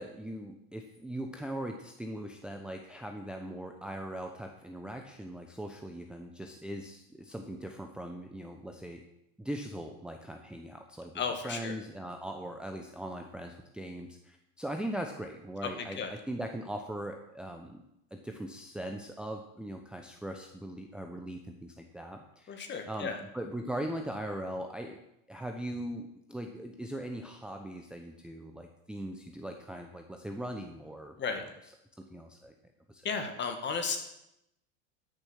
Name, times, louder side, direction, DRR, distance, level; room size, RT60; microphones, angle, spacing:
voice 1, 0.0-9.0 9.4-17.8 18.1-22.6 22.9-25.0 25.3-31.2 32.0-32.5 32.9-33.0, right 1 dB, ahead, 3 dB, 0.8 m, -40 dB
voice 2, 11.1-11.7 15.6-15.7 16.0-16.1 22.5-23.2 31.2-31.4 33.0-34.0, left 5 dB, 30° left, 5 dB, 1.9 m, -34 dB
12.0 x 6.7 x 6.4 m, 0.83 s
supercardioid pair, 130°, 37 cm